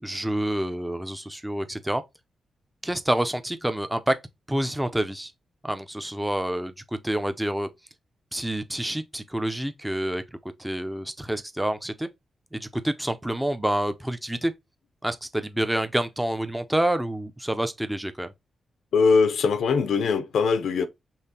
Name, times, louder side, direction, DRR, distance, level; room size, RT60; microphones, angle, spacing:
voice 1, 0.0-2.0 2.8-4.2 4.5-5.3 5.6-6.7 7.0-7.7 8.3-10.2 10.6-12.1 12.5-14.5 15.0-18.3, right 1 dB, 5° right, 0.5 m, -27 dB
voice 2, 18.9-20.9, left 5 dB, 80° left, 0.5 m, -21 dB
5.5 x 3.3 x 2.8 m
cardioid pair, 100°, 0 cm